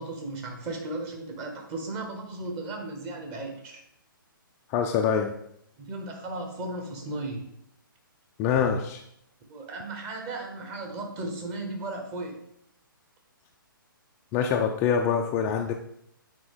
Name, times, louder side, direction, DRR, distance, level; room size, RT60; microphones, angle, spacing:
voice 1, 0.0-3.8 5.8-7.5 9.5-12.3, right 2 dB, 25° right, 2 dB, 1.3 m, -35 dB
voice 2, 4.7-5.3 8.4-9.0 14.3-15.7, left 7 dB, 20° left, 3 dB, 0.4 m, -25 dB
8.4 x 4.4 x 3.7 m, 0.73 s
figure-of-eight pair, 135°, 12 cm